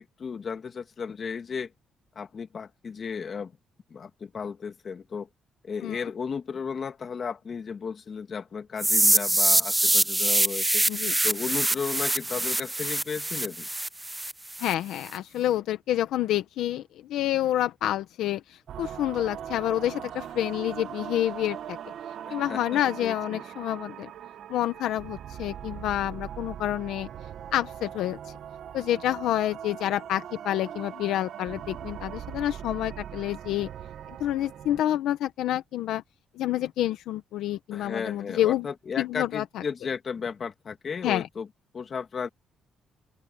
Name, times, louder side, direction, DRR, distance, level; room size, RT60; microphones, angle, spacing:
voice 1, 0.0-1.7 2.1-3.5 3.9-5.3 5.6-10.9 11.2-13.7 22.3-23.5 37.7-41.5 41.7-42.3, left 6 dB, 45° left, 2.6 m, -34 dB
sound 1, 8.8-14.7, right 1 dB, 10° right, 0.5 m, -24 dB
voice 2, 14.6-16.8 17.1-21.8 22.3-24.1 24.5-27.1 27.5-28.2 28.7-33.7 34.1-36.0 36.4-38.7 39.0-39.6 41.0-41.3, left 12 dB, 85° left, 1.1 m, -28 dB
sound 2, 18.7-34.8, right 9 dB, 70° right, 1.2 m, -40 dB
open air
cardioid pair, 90°, 0 cm